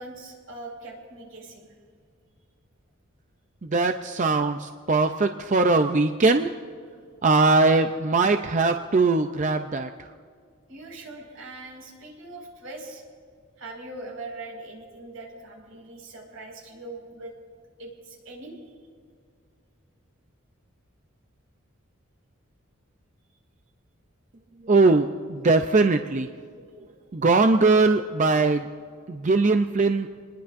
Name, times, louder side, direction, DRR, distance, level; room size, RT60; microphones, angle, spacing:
voice 1, 0.0-1.7 10.7-13.0 13.6-17.3 17.8-18.6, right 2 dB, 80° right, -1 dB, 5.2 m, -41 dB
voice 2, 3.6-6.5 7.2-10.1 24.6-26.3 27.1-28.7 29.1-30.1, right 3 dB, 35° right, 6 dB, 0.5 m, -21 dB
27.5 x 20.5 x 2.6 m, 2.1 s
head